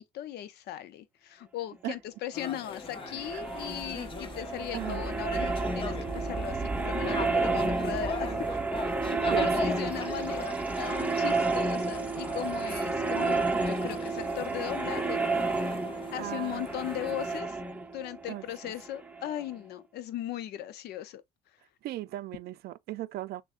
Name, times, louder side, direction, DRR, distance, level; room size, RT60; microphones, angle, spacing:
voice 1, 0.0-8.6 9.1-10.5 10.8-15.6 16.1-17.6 17.9-21.2, left 12 dB, 75° left, 0.6 m, -38 dB
sound 1, 2.3-17.4, left 4 dB, 30° left, 0.8 m, -41 dB
sound 2, 2.8-19.4, right 3 dB, 10° right, 0.8 m, -31 dB
voice 2, 4.7-5.0 9.3-9.5 16.2-17.2 18.3-18.7 21.8-23.4, right 15 dB, 70° right, 0.4 m, -37 dB
6.3 x 2.2 x 2.5 m
cardioid pair, 110°, 17 cm